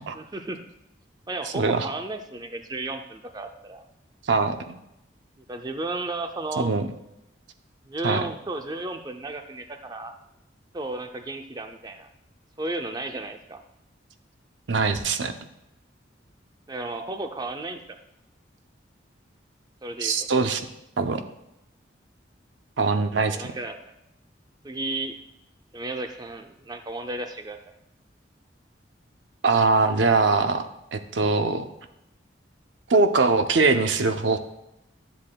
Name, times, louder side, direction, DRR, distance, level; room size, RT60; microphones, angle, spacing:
voice 1, 0.1-0.6 1.3-3.8 5.5-6.7 7.9-10.1 10.7-12.1 12.6-13.6 16.7-17.8 19.8-20.3 23.3-23.8 24.6-25.2 25.7-27.7, right 2 dB, 20° right, 5 dB, 0.4 m, -33 dB
voice 2, 1.5-1.9 4.3-4.8 6.6-6.9 8.0-8.2 14.7-15.3 20.0-20.7 21.0-21.2 22.8-23.5 29.4-31.7 32.9-34.4, right 3 dB, 80° right, 8 dB, 0.6 m, -22 dB
11.5 x 7.5 x 2.2 m, 0.86 s
head